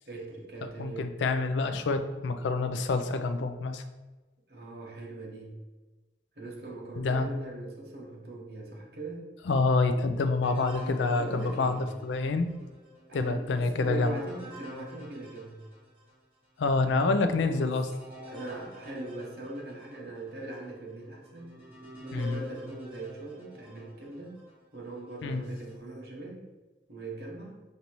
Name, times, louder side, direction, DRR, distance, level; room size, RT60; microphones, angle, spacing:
voice 1, 0.1-1.1 4.5-5.6 6.4-9.2 11.1-11.9 13.1-15.6 17.4-17.8 18.3-21.5 22.0-24.4 24.7-26.5 26.9-27.6, right 2 dB, 55° right, -2 dB, 1.0 m, -41 dB
voice 2, 0.8-3.8 7.0-7.3 9.5-12.5 13.1-14.2 16.6-17.9 22.1-22.4 25.2-25.4, left 3 dB, 80° left, 8 dB, 0.4 m, -27 dB
sound 1, 10.4-16.2 16.7-16.8 17.4-24.6 25.2-25.8, equal, 10° right, 1.1 m, -49 dB
5.3 x 2.7 x 3.0 m, 1.2 s
head